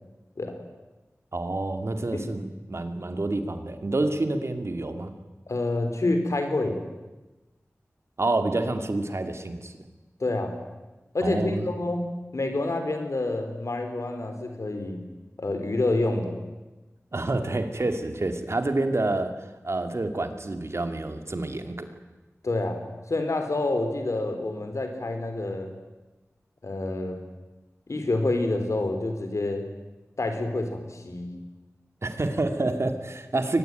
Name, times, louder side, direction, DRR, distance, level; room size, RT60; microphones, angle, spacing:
voice 1, 1.3-5.1 8.2-9.8 11.2-11.7 17.1-19.4 19.6-21.9 32.0-33.6, right 2 dB, 60° right, 7 dB, 2.5 m, -28 dB
voice 2, 5.5-6.8 10.2-10.5 11.1-12.0 12.3-15.0 15.4-16.4 22.4-22.8 23.1-25.7 26.6-27.2 27.9-29.6 30.2-31.3, left 2 dB, 75° left, 6 dB, 4.1 m, -27 dB
23.5 x 19.5 x 9.2 m, 1.1 s
wide cardioid pair, 50°, 5 cm